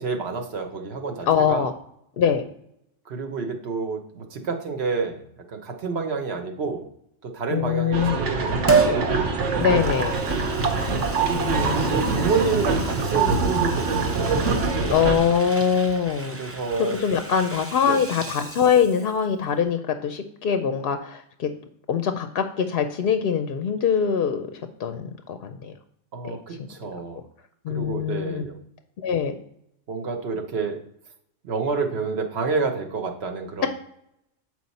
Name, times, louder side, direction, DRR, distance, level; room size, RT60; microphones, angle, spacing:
voice 1, 0.0-1.7 3.1-6.8 7.2-9.2 11.2-14.5 16.3-17.0 17.8-18.0 26.1-27.2 27.7-28.5 29.9-30.8 31.4-33.7, right 4 dB, 60° right, 5 dB, 1.1 m, -29 dB
voice 2, 1.2-1.7 2.2-2.4 7.5-8.2 9.6-10.2 11.3-12.0 14.9-16.4 16.8-21.5 21.9-24.5 24.8-25.7 26.2-26.7 27.6-28.5 29.0-29.3, left 7 dB, 60° left, 8 dB, 0.7 m, -23 dB
sound 1, 7.9-15.2, right 4 dB, 85° right, 1.3 m, -24 dB
Liquid, 8.7-9.0 9.6-19.2 19.6-19.7, right 4 dB, 20° right, 0.4 m, -30 dB
7.9 x 4.7 x 4.1 m, 0.74 s
omnidirectional pair, 1.2 m